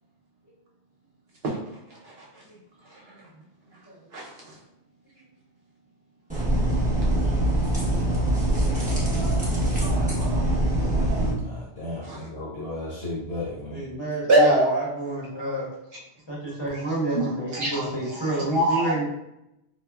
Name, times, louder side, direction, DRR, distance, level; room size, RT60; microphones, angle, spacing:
voice 1, 1.9-2.2 2.9-3.0 4.1-4.5 8.9-9.5 9.8-10.5 12.0-12.2 14.3-14.9 16.7-16.8 17.1-19.0, right 1 dB, 65° right, -4 dB, 0.9 m, -25 dB
sound 1, 6.3-11.3, right 1 dB, 10° right, 0.8 m, -23 dB
voice 2, 11.4-13.8, left 2 dB, 60° left, -5 dB, 1.2 m, -34 dB
voice 3, 13.7-15.7 16.3-19.0, right 2 dB, 25° left, -7 dB, 0.9 m, -30 dB
3.6 x 2.0 x 2.3 m, 0.86 s
omnidirectional pair, 1.2 m